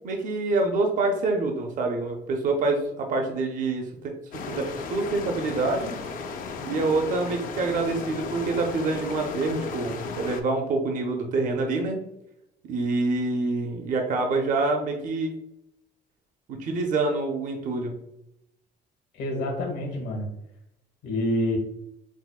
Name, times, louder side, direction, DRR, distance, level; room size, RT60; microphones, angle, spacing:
voice 1, 0.0-6.0 6.6-12.0 12.6-15.3 16.5-18.0, right 3 dB, 50° right, 3 dB, 0.6 m, -26 dB
sound 1, 4.3-10.4, left 5 dB, 50° left, 0.5 m, -35 dB
voice 2, 19.2-20.3 21.0-21.6, left 1 dB, 80° left, 0 dB, 1.3 m, -27 dB
6.0 x 2.1 x 2.2 m, 0.81 s
cardioid pair, 130°, 18 cm